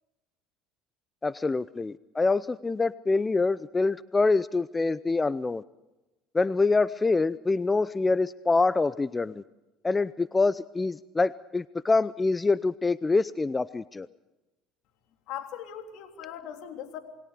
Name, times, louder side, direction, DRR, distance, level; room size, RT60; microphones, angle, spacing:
voice 1, 1.2-5.6 6.3-9.4 9.8-14.1, left 3 dB, 20° left, 17 dB, 0.6 m, -25 dB
voice 2, 15.3-17.0, left 10 dB, 65° left, 4 dB, 3.5 m, -39 dB
28.0 x 21.0 x 5.2 m, 1.0 s
hypercardioid pair, 75°, 0 cm